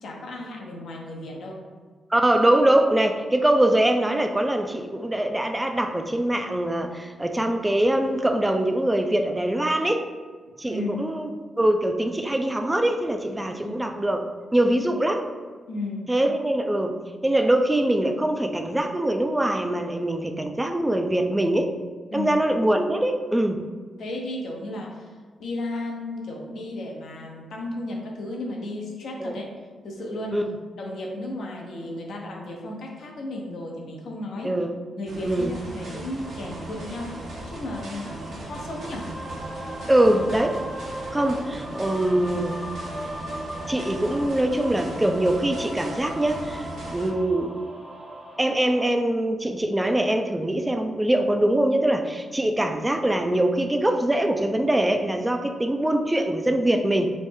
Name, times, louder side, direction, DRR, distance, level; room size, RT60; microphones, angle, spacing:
voice 1, 0.0-1.7 10.7-11.1 13.4-13.8 15.7-16.1 22.1-22.3 24.0-25.1 25.4-29.5 29.8-30.4 30.8-34.6 35.0-38.1 38.4-39.1, left 1 dB, 75° left, -1 dB, 0.6 m, -34 dB
voice 2, 2.1-10.0 10.6-11.3 11.6-14.3 14.5-15.2 16.1-17.0 17.2-21.7 22.1-23.6 29.2-29.4 30.3-30.4 34.4-34.7 35.2-35.5 39.9-40.6 41.1-42.6 43.7-47.6 48.4-57.1, right 1 dB, 15° right, 5 dB, 0.3 m, -23 dB
sound 1, 35.1-47.1, right 1 dB, 70° right, 0.8 m, -38 dB
sound 2, 35.3-48.8, right 1 dB, 35° right, 0.9 m, -39 dB
3.0 x 2.1 x 3.5 m, 1.5 s
supercardioid pair, 50°, 0 cm